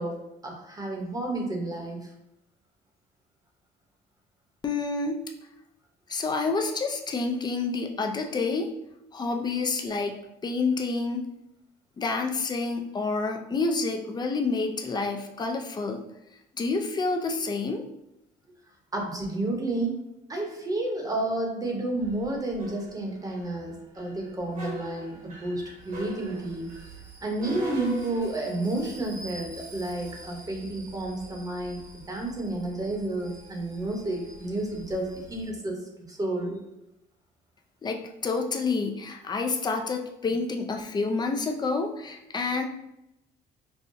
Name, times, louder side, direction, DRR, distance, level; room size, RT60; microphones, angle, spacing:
voice 1, 0.0-2.1 18.9-20.0 20.3-26.7 27.2-36.6, right 2 dB, 20° right, 0 dB, 0.9 m, -31 dB
voice 2, 4.6-5.2 6.1-8.7 9.1-11.3 12.0-16.0 16.6-17.8 37.8-42.7, left 3 dB, 25° left, 4 dB, 0.5 m, -28 dB
sound 1, 22.0-35.5, equal, 50° right, 1.1 m, -43 dB
5.4 x 2.2 x 2.6 m, 0.86 s
cardioid pair, 110°, 17 cm